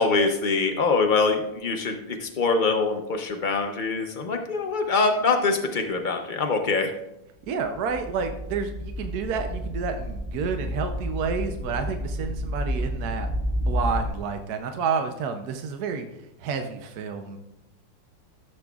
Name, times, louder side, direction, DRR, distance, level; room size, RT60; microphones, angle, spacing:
voice 1, 0.0-6.9, left 4 dB, 80° left, 3 dB, 0.4 m, -24 dB
sound 1, 7.4-7.5 7.7-14.1, equal, 10° left, 3.7 m, -30 dB
voice 2, 7.4-13.3 13.7-16.1 16.4-17.4, right 5 dB, 65° right, 6 dB, 1.1 m, -30 dB
14.0 x 7.8 x 2.4 m, 0.88 s
omnidirectional pair, 2.0 m